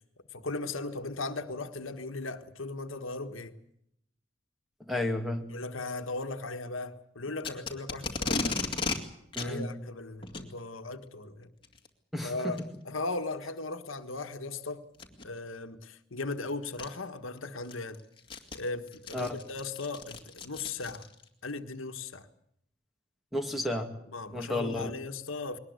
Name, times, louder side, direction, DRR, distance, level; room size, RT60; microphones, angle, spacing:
voice 1, 0.3-3.5 5.5-8.6 9.4-11.5 12.2-14.8 15.2-18.0 18.5-21.1 21.4-22.3 24.1-25.6, left 3 dB, 90° left, 1.6 m, -37 dB
voice 2, 4.9-5.4 9.4-9.7 12.1-12.6 19.1-19.3 23.3-23.9 24.3-24.9, left 1 dB, ahead, 2.1 m, -32 dB
Packing tape duct tape, 7.4-9.0 9.3-9.5 10.2-10.5 11.6-11.9 12.6-12.7 13.3-13.4 14.9-15.2 16.3-16.4 16.8-16.9 17.4-21.3, left 3 dB, 25° left, 2.2 m, -35 dB
22.0 x 19.5 x 8.3 m
head